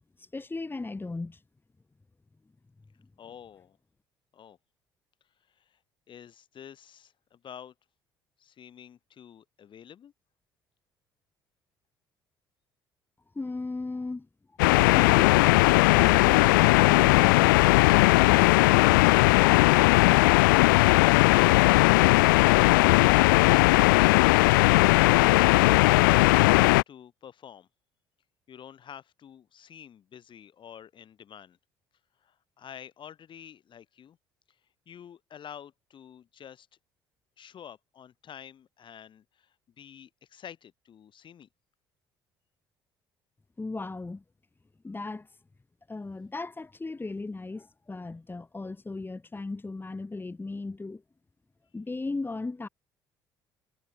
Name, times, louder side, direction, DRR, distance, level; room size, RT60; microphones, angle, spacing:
voice 1, 0.2-1.4 13.3-14.3 43.6-44.2 44.8-45.3 45.9-51.0 51.7-52.7, left 3 dB, 20° left, 4.5 m, -37 dB
voice 2, 3.2-3.8 4.3-4.6 5.5-5.8 6.1-7.7 8.4-10.1 22.8-23.0 25.3-27.7 28.5-31.6 32.2-34.2 34.9-36.7 37.4-41.5, left 9 dB, 45° left, 6.8 m, -48 dB
sound 1, 14.6-26.8, left 22 dB, 70° left, 0.6 m, -19 dB
figure-of-eight pair, 50°, 11 cm